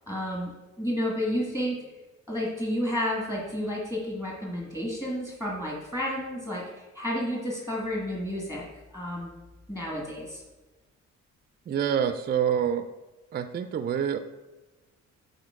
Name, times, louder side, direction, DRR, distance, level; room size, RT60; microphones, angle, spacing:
voice 1, 0.1-0.5 0.8-1.8 2.3-8.6 8.9-9.3 9.7-10.4, equal, 10° left, -4 dB, 1.6 m, -31 dB
voice 2, 11.7-12.9 13.3-14.2, right 8 dB, 35° right, 10 dB, 0.4 m, -26 dB
8.1 x 4.1 x 3.6 m, 1.2 s
cardioid pair, 90°, 30 cm